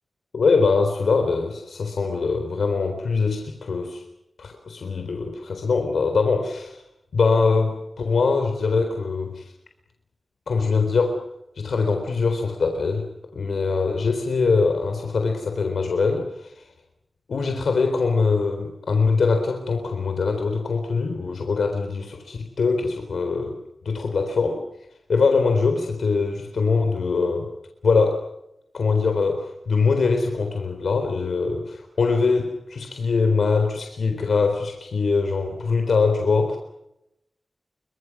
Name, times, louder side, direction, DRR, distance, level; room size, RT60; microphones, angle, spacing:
voice 1, 0.3-4.0 4.4-6.8 7.1-9.4 10.5-11.2 11.6-13.1 13.3-16.6 17.3-23.6 23.8-24.6 25.1-27.5 27.8-28.3 28.7-36.6, left 4 dB, 90° left, 4 dB, 4.0 m, -22 dB
29.5 x 25.5 x 6.2 m, 0.82 s
wide cardioid pair, 100°, 0 cm